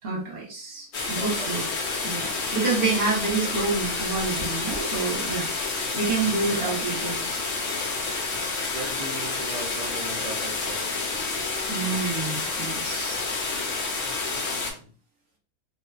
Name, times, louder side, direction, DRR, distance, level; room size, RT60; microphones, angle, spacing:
voice 1, 0.0-1.7 2.0-5.5 5.9-7.2 7.8-8.1 11.7-13.3, right 4 dB, 45° right, -2 dB, 0.9 m, -28 dB
sound 1, 0.9-14.7, left 3 dB, 70° left, 0.9 m, -29 dB
voice 2, 1.1-1.6 6.1-6.8 7.2-8.2 8.7-10.9 11.8-11.9 12.8-13.3 14.3-14.9, right 3 dB, 70° right, -2 dB, 0.3 m, -40 dB
2.6 x 2.2 x 2.3 m, 0.39 s
omnidirectional pair, 1.5 m